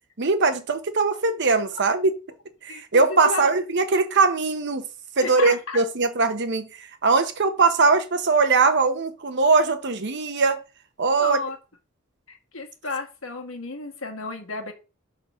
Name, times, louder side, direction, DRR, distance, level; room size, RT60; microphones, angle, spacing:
voice 1, 0.2-2.2 2.6-4.8 5.2-10.6 11.0-11.4, right 4 dB, 55° right, 0.9 m, -21 dB
voice 2, 5.2-5.8 11.2-11.6 12.3-14.7, left 3 dB, 75° left, 1.5 m, -32 dB
5.7 x 3.9 x 5.7 m
head